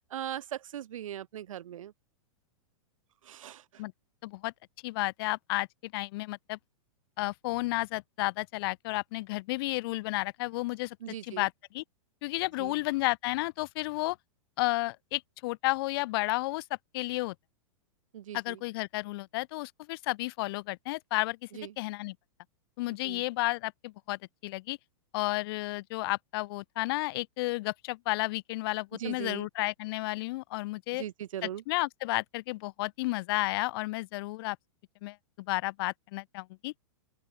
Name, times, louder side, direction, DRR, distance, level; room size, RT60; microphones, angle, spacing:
voice 1, 0.1-1.9 3.2-3.8 11.0-11.5 12.6-12.7 18.1-18.6 21.5-21.7 23.0-23.2 29.0-29.5 30.9-31.6, right 11 dB, 70° right, 5.3 m, -39 dB
voice 2, 4.2-4.5 4.8-6.6 7.2-11.0 11.2-11.8 12.2-14.2 14.6-16.6 16.9-17.3 18.3-21.4 21.8-22.1 22.8-24.8 25.1-31.0 31.7-34.6 35.0-36.7, left 21 dB, 45° left, 4.7 m, -32 dB
open air
supercardioid pair, 160°, 17 cm